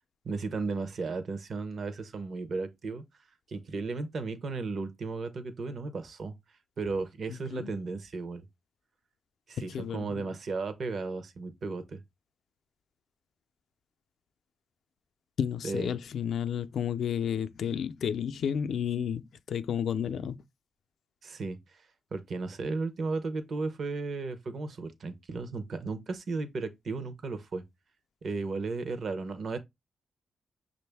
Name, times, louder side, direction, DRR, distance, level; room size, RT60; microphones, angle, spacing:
voice 1, 0.2-3.0 3.5-6.3 6.8-8.4 9.5-12.0 15.6-16.0 21.2-27.6 28.2-29.6, right 3 dB, 55° right, 0.8 m, -35 dB
voice 2, 7.3-7.7 9.6-10.3 15.4-20.4, left 8 dB, 70° left, 0.4 m, -32 dB
6.1 x 2.6 x 3.4 m
cardioid pair, 110°, 0 cm